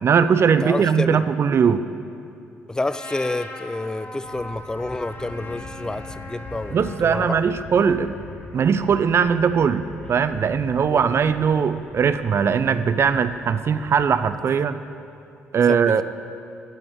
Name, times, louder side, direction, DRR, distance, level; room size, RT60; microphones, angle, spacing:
voice 1, 0.0-1.8 6.7-8.1 8.5-14.8 15.5-16.0, right 6 dB, 50° right, 12 dB, 0.5 m, -20 dB
voice 2, 0.6-1.3 2.7-6.8 7.0-7.4 10.9-11.1 15.7-15.8, left 2 dB, 15° left, 14 dB, 0.4 m, -29 dB
Trumpet, 2.9-7.2, left 2 dB, 35° left, 1.3 m, -39 dB
sound 1, 4.2-14.1, left 1 dB, 85° left, 2.1 m, -42 dB
8.7 x 6.0 x 8.0 m, 2.6 s
hypercardioid pair, 55°, 6 cm